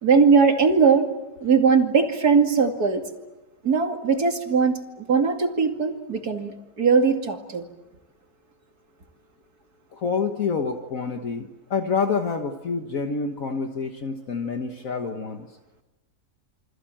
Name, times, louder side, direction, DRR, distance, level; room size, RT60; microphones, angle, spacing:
voice 1, 0.0-1.1 1.4-3.0 3.6-7.7, right 5 dB, 70° right, 3 dB, 2.9 m, -20 dB
voice 2, 9.9-15.5, left 5 dB, 60° left, 4 dB, 1.8 m, -27 dB
28.5 x 25.0 x 7.7 m, 1.1 s
omnidirectional pair, 1.7 m